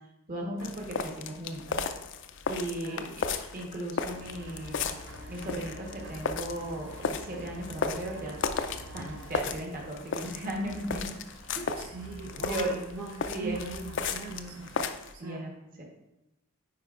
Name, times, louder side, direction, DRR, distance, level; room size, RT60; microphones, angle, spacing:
voice 1, 0.3-1.8 2.5-3.1 3.5-4.9 5.3-8.4 8.9-11.1 11.5-11.7 12.5-12.7 13.3-13.6 15.2-15.5 15.8-15.9, right 1 dB, 40° right, -2 dB, 1.2 m, -36 dB
sound 1, 0.6-15.1, left 5 dB, 60° left, 0.4 m, -35 dB
sound 2, 4.1-14.8, right 1 dB, 55° right, 0.6 m, -47 dB
voice 2, 11.8-14.7 15.1-15.5, right 3 dB, 85° right, -2 dB, 1.1 m, -40 dB
9.3 x 4.7 x 2.5 m, 0.93 s
head